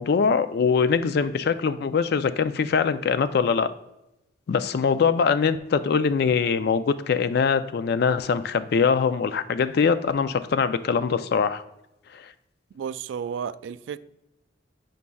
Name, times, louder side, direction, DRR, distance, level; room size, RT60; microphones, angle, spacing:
voice 1, 0.0-3.7 4.5-11.6 12.1-12.2, left 5 dB, 55° left, 0.3 m, -23 dB
voice 2, 12.7-14.0, right 7 dB, 75° right, 0.3 m, -32 dB
8.4 x 5.2 x 2.3 m
head